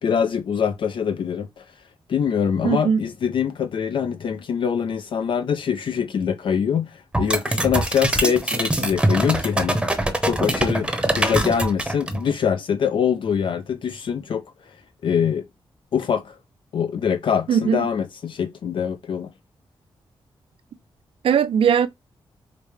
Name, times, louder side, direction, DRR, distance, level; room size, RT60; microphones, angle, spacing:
voice 1, 0.0-1.6 2.1-9.8 10.2-14.8 15.0-15.5 15.9-16.4 16.7-19.3, left 7 dB, 60° left, 0.4 m, -24 dB
voice 2, 2.6-3.0 17.5-17.9 21.2-21.9, right 7 dB, 75° right, 0.4 m, -19 dB
sound 1, 7.1-12.3, right 1 dB, 10° right, 0.8 m, -23 dB
5.0 x 2.1 x 3.1 m
wide cardioid pair, 110°, 10 cm